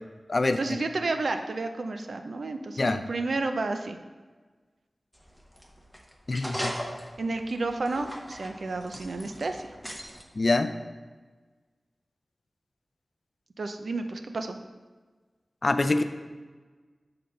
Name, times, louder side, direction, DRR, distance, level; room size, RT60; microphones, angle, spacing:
voice 1, 0.6-4.0 7.2-9.7 13.6-14.6, right 3 dB, 75° right, 7 dB, 0.4 m, -31 dB
sound 1, 5.1-10.2, equal, 5° right, 0.7 m, -39 dB
voice 2, 6.3-6.7 10.3-10.7 15.6-16.0, left 2 dB, 50° left, 9 dB, 0.4 m, -24 dB
6.5 x 3.9 x 5.3 m, 1.4 s
wide cardioid pair, 95°, 0 cm